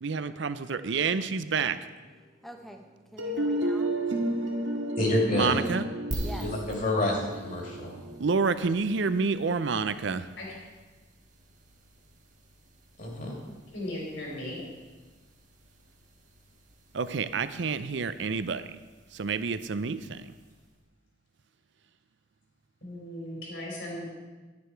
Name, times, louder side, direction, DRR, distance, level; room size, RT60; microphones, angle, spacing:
voice 1, 0.0-1.8 5.3-5.9 8.2-10.2 16.9-18.6 19.1-20.2, right 5 dB, 65° right, 13 dB, 0.5 m, -28 dB
voice 2, 2.4-2.8 3.1-3.9 5.3-6.5 8.5-8.7, equal, ahead, 4 dB, 0.8 m, -45 dB
sound 1, 3.2-9.0, right 1 dB, 80° right, 1.6 m, -32 dB
voice 3, 5.0-5.6 6.3-8.0 13.0-13.3, left 1 dB, 45° left, -1 dB, 2.5 m, -28 dB
sound 2, 6.1-20.8, right 1 dB, 45° right, 1.4 m, -46 dB
voice 4, 13.7-14.6 22.8-24.0, left 1 dB, 70° left, -3 dB, 4.4 m, -37 dB
11.5 x 9.7 x 4.6 m, 1.3 s
head